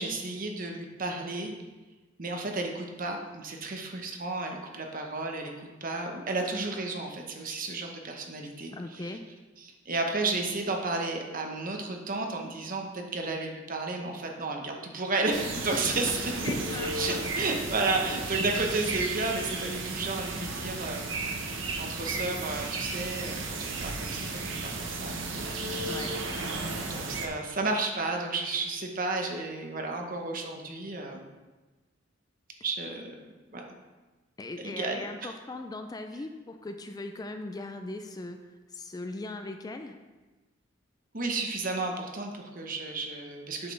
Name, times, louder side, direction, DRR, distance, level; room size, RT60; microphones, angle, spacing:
voice 1, 0.0-1.5 2.2-9.1 9.6-16.3 16.9-25.9 26.9-31.3 32.6-33.1 33.5-33.6 34.6-35.3 41.1-43.7, right 3 dB, 45° right, 2 dB, 1.0 m, -33 dB
voice 2, 8.7-9.2 15.7-16.0 16.4-17.2 25.6-26.1 34.4-38.4 38.7-40.0, left 2 dB, 20° left, 6 dB, 0.4 m, -39 dB
sound 1, 15.3-27.3, right 3 dB, 70° right, 0.9 m, -34 dB
8.4 x 6.4 x 3.3 m, 1.2 s
head